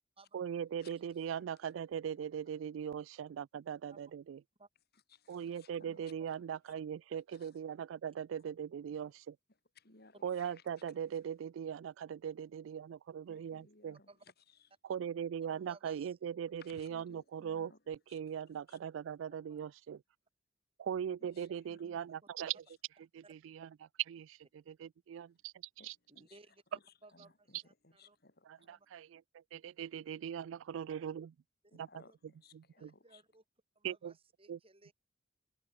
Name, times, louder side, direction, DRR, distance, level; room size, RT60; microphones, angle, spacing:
voice 1, 0.3-4.4 5.3-9.4 10.2-14.0 14.8-20.0 20.8-22.6 23.1-25.5 25.8-26.0 28.5-31.3 31.7-32.0 32.5-32.9 33.8-34.1 34.5-34.6, right 8 dB, 80° right, 0.3 m, -40 dB
voice 2, 1.3-1.7 4.9-6.0 7.3-7.5 9.7-10.6 13.3-14.1 14.5-14.7 16.6-17.8 18.1-18.2 18.7-18.8 21.2-22.0 25.8-26.4 26.7-28.8 31.7-33.2, left 3 dB, 55° left, 4.8 m, -62 dB
voice 3, 15.5-16.1 19.5-19.6 21.9-22.1 23.2-23.3 26.2-28.2 28.7-28.9 31.6-32.2 32.8-33.4 33.8-34.9, right 2 dB, 30° right, 4.4 m, -61 dB
head